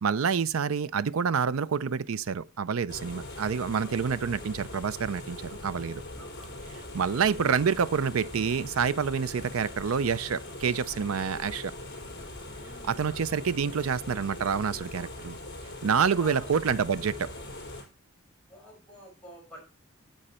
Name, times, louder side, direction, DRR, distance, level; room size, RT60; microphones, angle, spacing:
voice 1, 0.0-6.0 6.9-11.7 12.8-15.4 15.8-17.3, right 6 dB, 80° right, 0.5 m, -27 dB
sound 1, 2.9-17.8, left 1 dB, 55° left, 4.8 m, -41 dB
voice 2, 3.8-4.1 6.1-6.7 12.6-13.3 16.2-16.8 18.5-19.6, equal, 5° left, 5.2 m, -49 dB
9.9 x 7.8 x 4.3 m
head